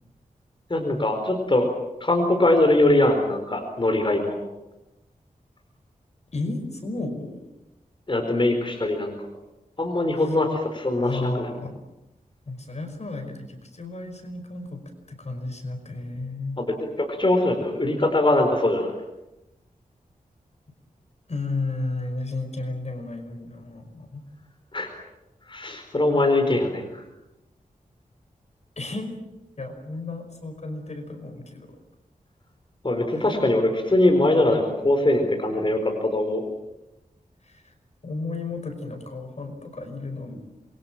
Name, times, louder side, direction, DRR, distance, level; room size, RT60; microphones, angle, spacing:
voice 1, 0.7-1.7 2.0-4.4 8.1-9.3 9.8-11.5 16.6-18.9 24.7-24.9 25.5-27.0 32.8-36.5, left 1 dB, 35° left, 3 dB, 4.6 m, -22 dB
voice 2, 6.3-7.5 11.0-11.8 12.5-14.8 15.1-16.6 21.3-24.3 28.8-29.2 29.6-31.8 33.1-33.3 37.4-37.7 38.0-40.4, left 2 dB, 50° left, 6 dB, 5.3 m, -33 dB
27.5 x 23.5 x 7.5 m, 0.96 s
wide cardioid pair, 105°, 14 cm